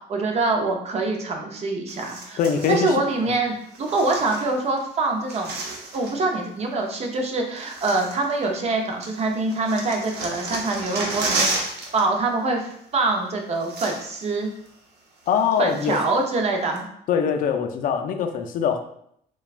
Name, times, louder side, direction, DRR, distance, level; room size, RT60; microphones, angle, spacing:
voice 1, 0.1-2.4 2.7-5.6 5.9-14.5 15.6-16.9, right 3 dB, 40° right, 2 dB, 0.6 m, -25 dB
sound 1, 1.9-2.9 3.7-4.8 5.0-6.3 7.1-7.2 7.6-8.7 9.0-12.0 12.3-12.5 13.2-13.3 13.5-14.3 14.7-14.8 15.3-16.2 16.7-16.8, right 3 dB, 75° right, 0.7 m, -32 dB
voice 2, 2.4-3.0 3.2-3.3 15.3-16.0 17.1-18.8, left 7 dB, 55° left, 6 dB, 0.4 m, -22 dB
3.1 x 2.2 x 2.4 m, 0.70 s
cardioid pair, 110°, 17 cm